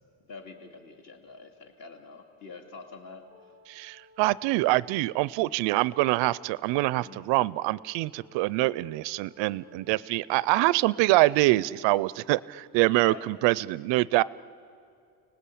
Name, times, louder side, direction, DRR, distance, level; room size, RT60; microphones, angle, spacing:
voice 1, 0.2-3.5 7.0-7.3 13.0-13.3, left 3 dB, 40° left, 4 dB, 2.5 m, -46 dB
sound 1, 3.3-11.5, left 1 dB, 5° right, 1.1 m, -58 dB
voice 2, 3.7-14.2, right 19 dB, 80° right, 21 dB, 0.6 m, -25 dB
30.0 x 19.0 x 8.5 m, 2.5 s
cardioid pair, 180°, 44 cm